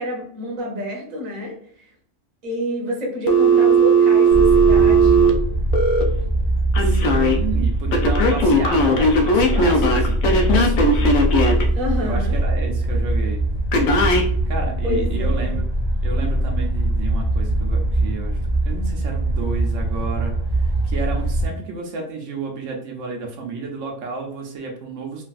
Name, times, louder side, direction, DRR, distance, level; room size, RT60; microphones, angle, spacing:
voice 1, 0.0-1.5 2.4-5.3 11.7-12.4 14.8-15.6, equal, 40° right, -1 dB, 0.8 m, -28 dB
Telephone, 3.3-6.0 6.7-7.4 7.9-11.6 13.7-14.3, right 2 dB, 85° left, 1.0 m, -17 dB
sound 1, 4.3-21.5, right 1 dB, 45° left, 0.6 m, -22 dB
voice 2, 6.8-11.2 12.0-13.4 14.5-15.6 16.0-18.4 18.7-25.2, right 4 dB, 75° right, 1 dB, 1.0 m, -32 dB
3.2 x 2.4 x 2.4 m, 0.62 s
omnidirectional pair, 1.3 m